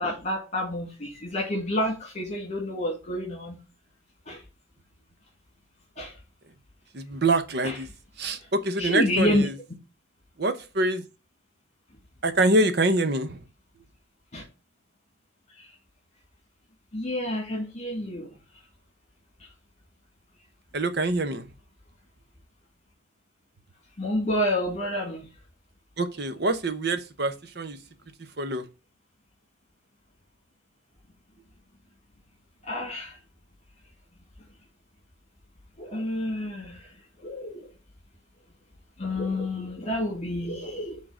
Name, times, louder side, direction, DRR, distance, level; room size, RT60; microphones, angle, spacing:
voice 1, 0.0-3.6 4.3-4.4 6.0-6.1 7.6-7.8 8.8-9.5 14.3-14.4 15.6-15.7 16.9-18.3 24.0-25.3 32.7-33.2 35.8-36.9 37.2-37.7 39.0-41.0, left 1 dB, 35° left, 2.2 m, -29 dB
voice 2, 6.9-7.9 8.2-9.5 10.4-11.0 12.2-13.4 20.7-21.5 26.0-27.8 28.4-28.7, right 2 dB, 55° right, 1.0 m, -25 dB
6.3 x 3.9 x 6.3 m
head